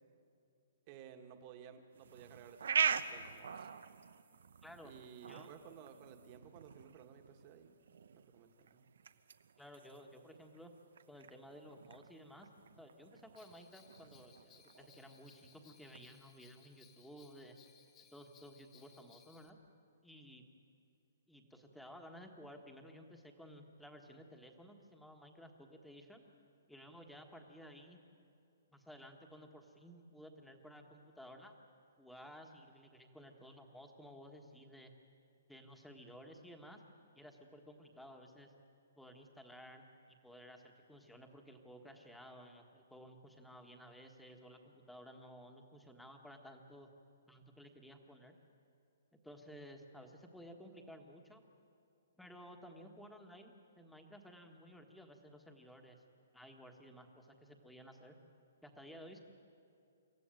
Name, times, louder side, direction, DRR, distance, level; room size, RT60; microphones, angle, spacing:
voice 1, 0.9-3.7 4.8-7.8 8.3-8.9, right 8 dB, 30° right, 6 dB, 1.6 m, -56 dB
sound 1, 1.9-16.0, right 7 dB, 75° right, 0.9 m, -43 dB
voice 2, 4.6-4.9 5.3-5.5 9.6-10.7 11.1-12.5 12.8-17.6 18.1-19.6 20.0-20.4 21.3-26.2 26.7-28.0 28.7-31.5 32.0-34.9 35.5-36.8 37.1-38.5 39.0-46.9 47.3-48.4 49.2-51.4 52.2-56.0 56.3-58.2 58.6-59.2, equal, ahead, 3 dB, 1.5 m, -55 dB
Bell, 13.3-19.5, left 8 dB, 20° left, 1.2 m, -65 dB
26.0 x 14.5 x 9.1 m, 2.6 s
hypercardioid pair, 160°, 0 cm